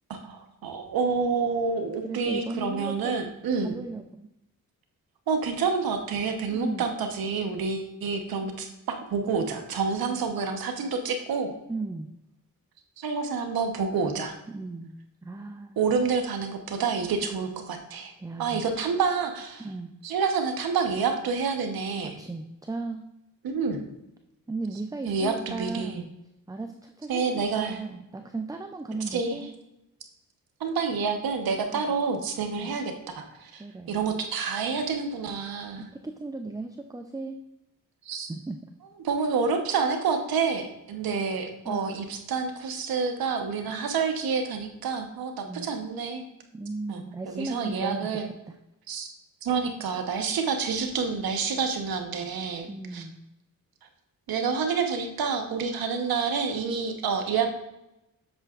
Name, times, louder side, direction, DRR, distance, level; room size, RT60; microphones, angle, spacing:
voice 1, 0.1-3.8 5.3-11.5 13.0-14.4 15.8-18.1 18.4-19.6 20.0-22.1 23.4-23.8 25.1-26.0 27.1-27.8 29.1-29.4 30.6-35.9 38.1-38.3 39.0-46.2 46.9-47.0 47.3-48.3 48.9-49.1 49.4-53.0 54.3-57.6, right 5 dB, 85° right, 5 dB, 1.0 m, -28 dB
voice 2, 2.0-3.2 3.6-4.3 6.5-6.8 11.7-12.1 14.5-15.8 18.2-18.6 19.6-19.9 22.0-23.1 24.5-26.1 26.5-29.5 31.7-31.9 32.5-32.8 33.6-34.1 35.8-37.4 38.3-38.6 41.6-41.9 45.4-45.7 46.5-48.6 52.7-53.2, right 3 dB, 10° right, 6 dB, 0.5 m, -36 dB
7.9 x 6.7 x 2.4 m, 0.89 s
cardioid pair, 60°, 35 cm